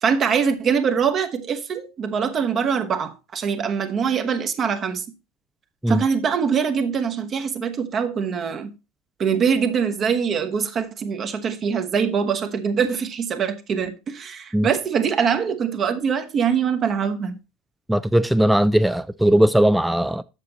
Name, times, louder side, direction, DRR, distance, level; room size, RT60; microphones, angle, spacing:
voice 1, 0.0-5.0 5.9-8.7 9.2-17.4, right 6 dB, 35° right, 1.0 m, -23 dB
voice 2, 17.9-20.2, right 1 dB, 5° right, 0.3 m, -18 dB
7.3 x 6.8 x 4.0 m
figure-of-eight pair, 75°, 0 cm